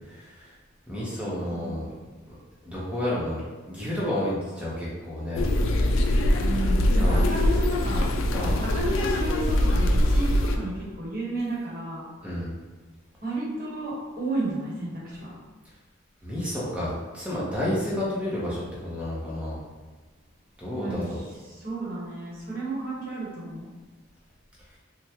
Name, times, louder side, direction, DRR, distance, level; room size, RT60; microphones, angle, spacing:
voice 1, 0.1-0.5 0.9-1.9 2.3-2.4 2.6-5.4 7.0-7.2 8.3-8.6 12.2-12.5 16.2-19.6 20.6-21.2, left 1 dB, 5° right, -8 dB, 0.9 m, -30 dB
voice 2, 1.4-1.8 5.3-5.4 6.4-8.1 8.4-12.0 13.2-15.3 20.7-21.2 21.5-23.7, right 2 dB, 45° right, -7 dB, 1.2 m, -32 dB
sound 1, 5.4-10.6, left 1 dB, 65° left, 0.3 m, -22 dB
3.4 x 2.3 x 2.9 m, 1.3 s
head